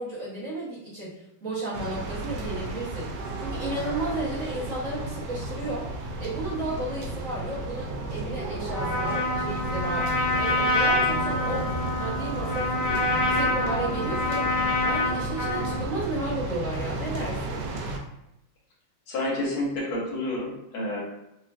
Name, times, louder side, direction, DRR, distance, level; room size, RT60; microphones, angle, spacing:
voice 1, 0.0-3.1 3.4-5.9 6.2-10.1 10.3-14.5 14.8-17.6, right 2 dB, 45° right, -8 dB, 1.4 m, -33 dB
sound 1, 1.7-18.0, right 2 dB, 70° right, 1.0 m, -33 dB
Trumpet, 8.7-15.9, left 2 dB, 30° left, 0.8 m, -26 dB
voice 2, 19.1-21.0, left 1 dB, 80° left, -4 dB, 1.9 m, -29 dB
5.3 x 2.4 x 2.5 m, 0.86 s
omnidirectional pair, 2.2 m